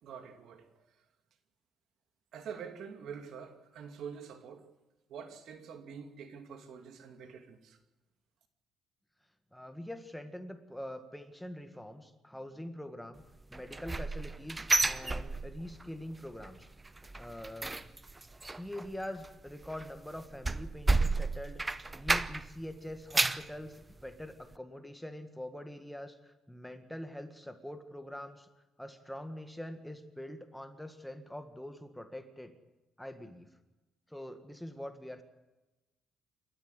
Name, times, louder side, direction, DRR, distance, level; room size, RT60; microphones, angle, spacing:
voice 1, 0.0-1.0 2.3-4.7 5.1-7.8, right 7 dB, 65° right, 2.5 m, -46 dB
voice 2, 9.5-13.2 13.5-16.7 17.2-17.8 18.5-21.6 21.9-28.5 28.8-32.5 33.0-33.6 34.1-35.2, left 1 dB, 5° left, 1.7 m, -44 dB
sound 1, 13.5-15.9 16.1-16.5 16.8-22.6 22.9-23.5 24.0-24.1 24.5-24.6, right 3 dB, 15° right, 0.8 m, -32 dB
28.0 x 13.0 x 8.2 m
cardioid pair, 120°, 0 cm